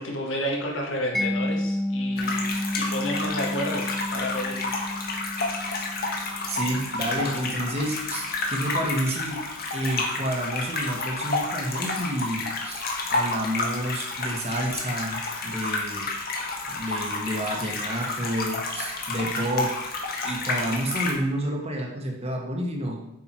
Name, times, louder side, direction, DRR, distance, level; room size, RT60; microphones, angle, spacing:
voice 1, 0.0-4.6, left 1 dB, 65° left, -1 dB, 1.9 m, -31 dB
Mallet percussion, 1.1-7.9, left 1 dB, ahead, 0.4 m, -31 dB
sound 1, 2.2-21.1, left 3 dB, 45° left, 1.5 m, -30 dB
voice 2, 6.5-9.5 9.7-16.1 16.7-19.9 20.2-23.1, right 1 dB, 30° right, 1 dB, 1.4 m, -30 dB
8.4 x 5.4 x 4.5 m, 0.85 s
head